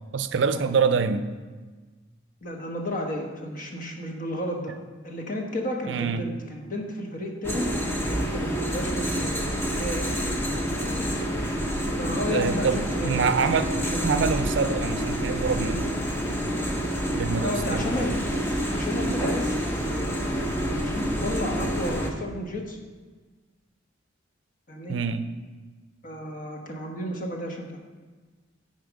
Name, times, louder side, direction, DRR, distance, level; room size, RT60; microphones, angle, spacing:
voice 1, 0.1-1.3 5.9-6.2 12.3-13.7 14.0-15.9 17.1-18.2 24.9-25.2, right 5 dB, 65° right, 11 dB, 0.4 m, -25 dB
voice 2, 2.4-4.7 5.0-7.7 8.0-10.7 12.0-14.0 17.4-18.2 18.7-22.8 24.7-25.0 26.0-27.7, left 1 dB, 45° left, 2 dB, 1.1 m, -33 dB
sound 1, 7.4-22.1, equal, 10° left, 0.7 m, -28 dB
9.6 x 4.3 x 5.0 m, 1.3 s
head